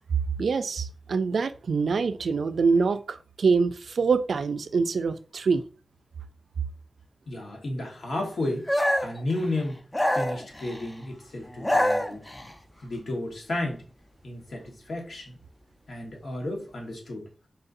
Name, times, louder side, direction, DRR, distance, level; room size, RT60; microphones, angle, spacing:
voice 1, 0.4-5.6, right 4 dB, 85° right, 0.3 m, -25 dB
voice 2, 7.3-8.7 9.0-9.8 10.1-12.2 12.8-13.8 14.2-15.4 15.9-17.3, left 2 dB, 70° left, 1.3 m, -32 dB
sound 1, 8.7-9.2 9.9-10.9 11.5-12.5, left 1 dB, 15° left, 0.6 m, -25 dB
4.2 x 4.0 x 2.5 m
wide cardioid pair, 70°, 0 cm